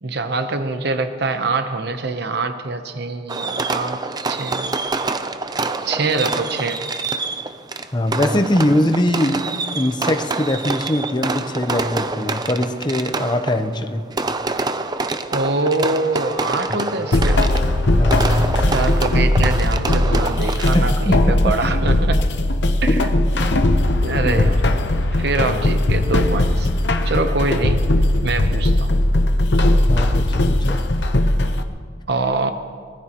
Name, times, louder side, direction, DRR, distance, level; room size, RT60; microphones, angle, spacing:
voice 1, 0.0-4.0 4.3-5.1 5.8-6.8 15.3-17.4 18.7-22.4 22.8-23.1 23.4-23.5 24.0-24.6 25.1-26.7 27.0-27.9 28.2-28.9 32.1-32.5, right 3 dB, 60° right, 8 dB, 0.8 m, -24 dB
Fireworks, 3.3-21.1, right 3 dB, 20° right, 0.5 m, -27 dB
voice 2, 7.9-14.1 16.7-16.8 18.0-18.5 20.7-21.5 22.9-23.0 23.4-23.5 24.2-24.5 29.9-30.8, left 1 dB, 25° left, 8 dB, 0.8 m, -21 dB
sound 1, 15.5-19.6, left 1 dB, ahead, 1.8 m, -36 dB
sound 2, 17.1-31.6, left 1 dB, 60° left, 0.9 m, -18 dB
24.5 x 19.5 x 3.0 m, 2.1 s
head